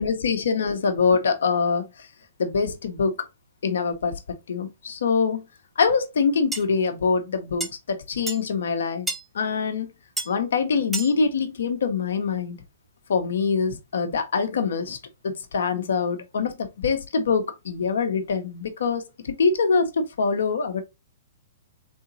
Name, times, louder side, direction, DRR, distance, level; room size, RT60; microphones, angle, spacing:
voice 1, 0.0-1.9 2.4-3.1 3.6-4.2 4.5-5.4 5.8-9.1 9.3-9.9 10.3-12.6 13.1-15.0 15.2-20.8, left 5 dB, 70° left, 1.0 m, -24 dB
sound 1, 6.5-6.6 7.6-7.7 8.3-8.4 9.1-9.2 10.2-10.3 10.9-11.1, right 2 dB, 5° right, 0.9 m, -29 dB
3.8 x 3.6 x 2.6 m
hypercardioid pair, 120°, 0 cm